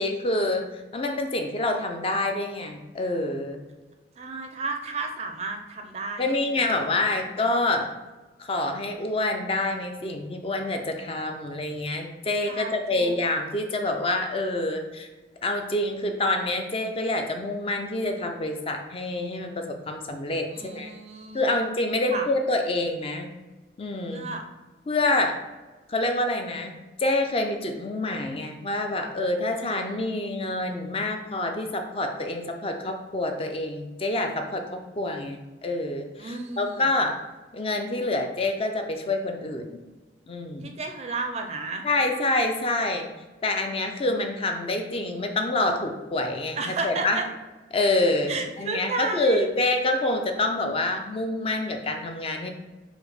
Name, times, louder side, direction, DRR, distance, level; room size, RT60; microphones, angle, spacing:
voice 1, 0.0-3.6 6.2-7.9 8.4-15.1 15.4-20.9 21.3-23.3 23.8-24.3 24.9-25.4 25.9-37.1 37.5-39.8 40.3-40.7 41.8-43.1 43.4-47.2 47.7-52.5, left 2 dB, 30° left, 4 dB, 0.4 m, -27 dB
voice 2, 4.2-7.2 12.5-13.1 20.5-21.6 22.1-22.2 24.1-24.4 36.2-36.9 40.6-41.8 46.6-47.3 48.3-49.5, right 3 dB, 35° right, 4 dB, 0.4 m, -33 dB
4.9 x 2.1 x 4.8 m, 1.2 s
head